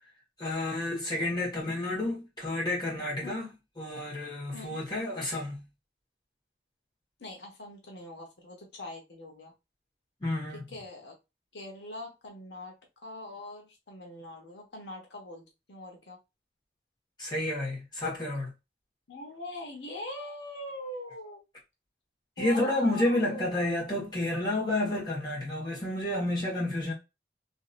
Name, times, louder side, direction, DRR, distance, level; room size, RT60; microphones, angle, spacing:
voice 1, 0.4-3.5 3.8-5.6 10.2-10.6 17.2-18.5 22.4-26.9, left 1 dB, 25° left, 1.5 m, -30 dB
voice 2, 7.2-9.5 10.5-11.1 11.5-12.7 13.0-16.2 19.1-21.4 22.4-23.6, left 1 dB, 80° left, 0.9 m, -42 dB
3.0 x 2.7 x 2.5 m
head